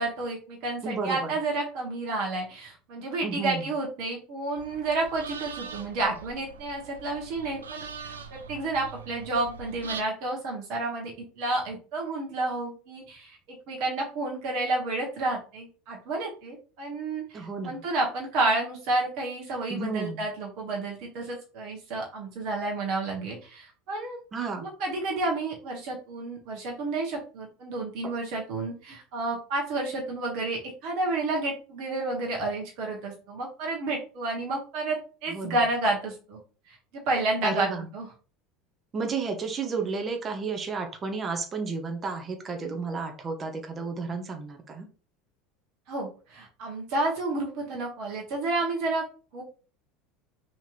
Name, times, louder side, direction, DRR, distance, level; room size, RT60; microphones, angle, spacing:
voice 1, 0.0-13.4 13.7-24.2 24.6-36.4 36.7-38.1 45.9-49.0 49.3-49.4, right 2 dB, 60° right, -1 dB, 1.1 m, -30 dB
voice 2, 0.8-1.3 3.2-3.6 17.3-17.8 19.7-20.2 24.3-24.7 35.3-35.6 37.4-37.9 38.9-44.9, right 4 dB, 30° right, 4 dB, 0.8 m, -32 dB
sound 1, 4.6-10.0, right 5 dB, 90° right, 0.4 m, -42 dB
4.2 x 3.0 x 2.5 m, 0.37 s
hypercardioid pair, 80°, 0 cm